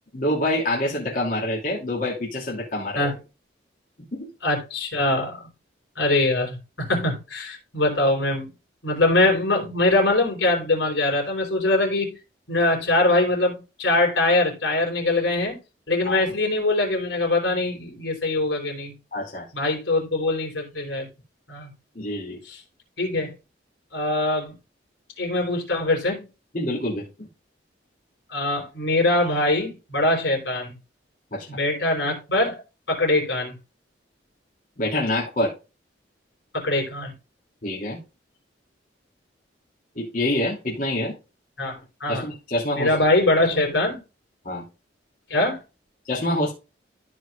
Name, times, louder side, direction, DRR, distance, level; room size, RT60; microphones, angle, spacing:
voice 1, 0.1-3.0 4.1-4.3 16.0-16.2 19.1-19.5 21.9-22.4 26.5-27.3 31.3-31.5 34.8-35.5 37.6-38.0 39.9-41.1 42.1-42.9 44.4-44.6 46.1-46.5, left 1 dB, 45° left, 2.9 m, -26 dB
voice 2, 4.4-5.4 6.0-8.5 8.8-12.2 12.5-15.6 15.9-18.9 19.5-21.1 21.5-21.7 22.4-22.6 23.0-23.3 23.9-24.5 25.2-26.2 28.3-30.7 31.5-32.6 32.9-33.6 36.5-37.1 41.6-42.3 42.7-44.0 45.3-45.6, left 2 dB, 75° left, 4.1 m, -23 dB
14.5 x 5.1 x 2.5 m
head